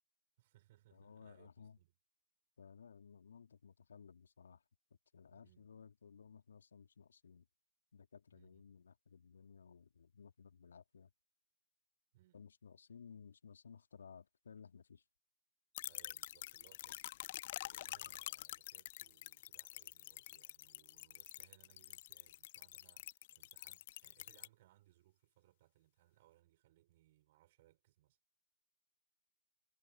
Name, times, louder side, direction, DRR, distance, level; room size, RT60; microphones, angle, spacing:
voice 1, 0.4-1.9 5.3-5.7 8.3-8.8 12.1-12.4 15.8-28.2, right 16 dB, 40° right, 4.8 m, -70 dB
voice 2, 0.9-1.8 2.6-4.6 5.1-7.5 7.9-11.1 12.3-15.0, left 6 dB, 65° left, 1.9 m, -58 dB
sound 1, 15.7-24.5, left 15 dB, 40° left, 1.1 m, -48 dB
figure-of-eight pair, 135°, 0 cm